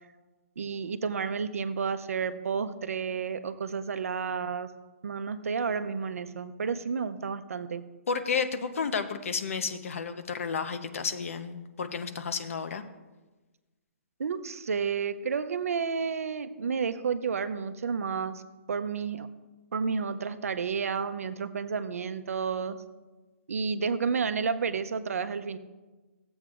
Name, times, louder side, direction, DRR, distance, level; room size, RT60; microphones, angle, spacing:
voice 1, 0.6-4.7 5.0-7.8 14.2-18.4 18.7-19.3 19.7-22.8 23.5-25.6, right 5 dB, 90° right, 11 dB, 0.6 m, -31 dB
voice 2, 8.1-12.8, left 5 dB, 70° left, 9 dB, 0.8 m, -32 dB
14.5 x 7.9 x 2.5 m, 1.2 s
hypercardioid pair, 165°, 8 cm